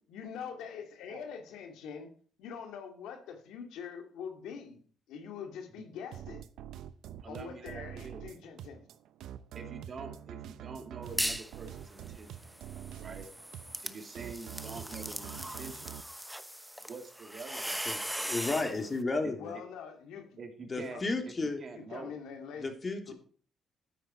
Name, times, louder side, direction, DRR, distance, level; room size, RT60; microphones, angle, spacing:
voice 1, 0.1-2.1 2.4-4.8 5.1-6.4 7.2-8.8 19.4-20.4 20.9-21.0 21.7-22.7 23.1-23.2, left 7 dB, 90° left, 5 dB, 2.5 m, -44 dB
sound 1, 6.1-16.0, right 10 dB, 80° right, 0.8 m, -46 dB
voice 2, 7.2-8.2 9.5-12.5 13.0-13.3 13.8-16.0 16.8-18.0 19.2-19.4 20.4-21.3 21.6-22.2, right 4 dB, 45° right, 4 dB, 2.8 m, -46 dB
sound 2, 11.0-11.5 11.9-18.8, equal, 5° right, 1.0 m, -39 dB
voice 3, 17.8-19.5 20.7-21.6 22.6-23.1, left 3 dB, 30° left, 4 dB, 3.1 m, -33 dB
12.5 x 9.6 x 4.5 m, 0.43 s
cardioid pair, 90°, 0 cm